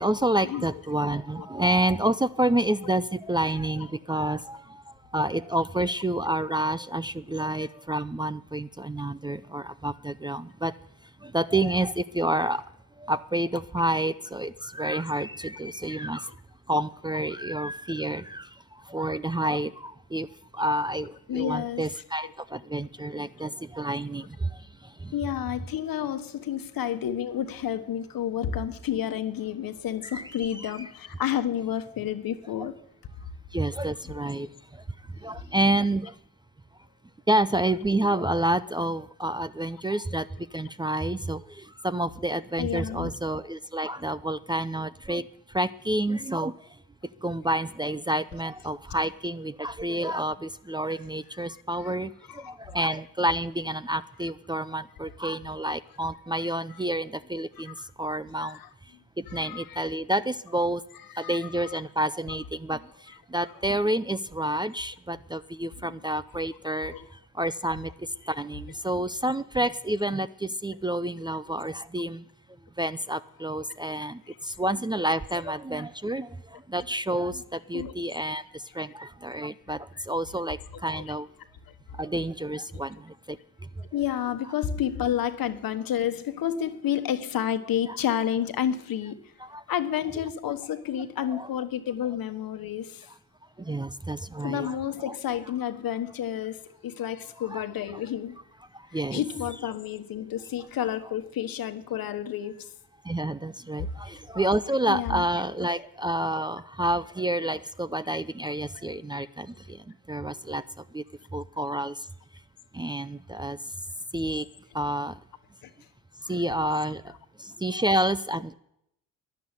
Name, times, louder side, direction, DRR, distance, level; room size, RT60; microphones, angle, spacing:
voice 1, 0.0-10.7 11.2-12.6 13.0-16.3 16.7-20.3 20.5-25.1 30.1-30.9 33.5-34.8 35.1-36.1 37.3-46.7 47.2-58.6 59.2-60.8 61.2-66.9 67.3-72.2 72.8-81.3 81.9-83.4 83.8-83.9 87.9-88.0 89.4-89.6 91.3-91.5 93.6-94.7 95.0-95.2 97.5-97.6 98.7-99.2 103.0-110.6 110.9-111.0 111.3-112.1 112.7-113.6 114.1-114.5 114.7-115.2 116.3-117.1 117.4-118.5, right 1 dB, 10° right, 14 dB, 0.6 m, -29 dB
voice 2, 1.1-1.5 21.3-21.9 25.1-32.8 34.4-34.5 42.6-43.1 51.8-51.9 52.3-52.5 57.6-57.9 58.4-58.7 59.3-59.8 61.1-61.8 65.8-65.9 66.9-67.1 77.7-77.9 81.0-81.1 83.9-89.2 89.7-93.1 94.4-98.4 98.9-102.7 104.9-105.2 108.1-108.2 115.6-115.7, left 10 dB, 65° left, 10 dB, 1.4 m, -30 dB
11.5 x 10.5 x 9.7 m, 0.78 s
supercardioid pair, 55°, 38 cm